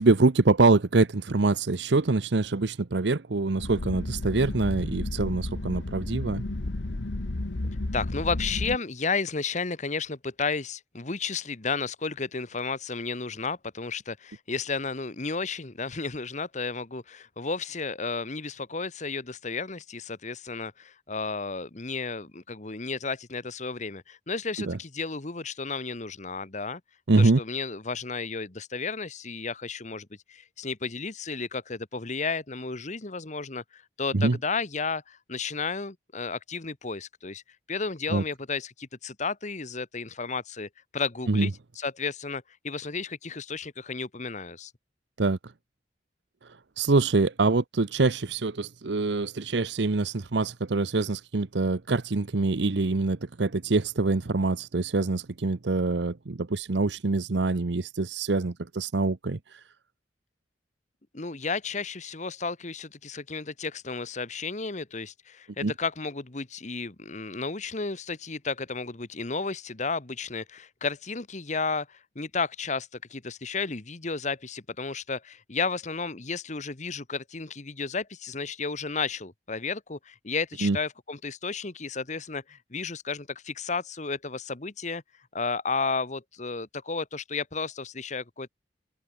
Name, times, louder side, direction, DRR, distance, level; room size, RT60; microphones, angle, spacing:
voice 1, 0.0-6.4 24.6-24.8 27.1-27.4 34.1-34.4 38.1-38.2 41.3-41.5 45.2-45.4 46.8-59.4 65.6-65.7 80.6-80.8, right 3 dB, 75° right, 0.8 m, -25 dB
sound 1, 3.6-8.8, left 2 dB, 80° left, 1.2 m, -32 dB
voice 2, 7.9-26.8 27.2-37.4 37.7-44.7 61.1-85.0 85.3-88.5, left 4 dB, 40° left, 1.3 m, -33 dB
head